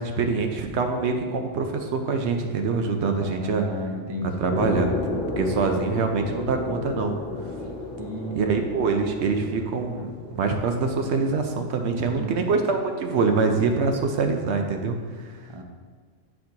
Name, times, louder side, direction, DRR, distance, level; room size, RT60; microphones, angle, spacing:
voice 1, 0.0-3.6 4.2-4.9 5.4-7.2 8.3-15.4, right 4 dB, 70° right, 5 dB, 0.8 m, -25 dB
voice 2, 3.2-4.4 8.0-8.7 11.9-12.5 15.5-15.6, right 1 dB, 35° right, 2 dB, 0.4 m, -33 dB
sound 1, 4.5-10.8, left 2 dB, 55° left, 1.2 m, -32 dB
9.1 x 4.3 x 2.8 m, 1.5 s
omnidirectional pair, 1.3 m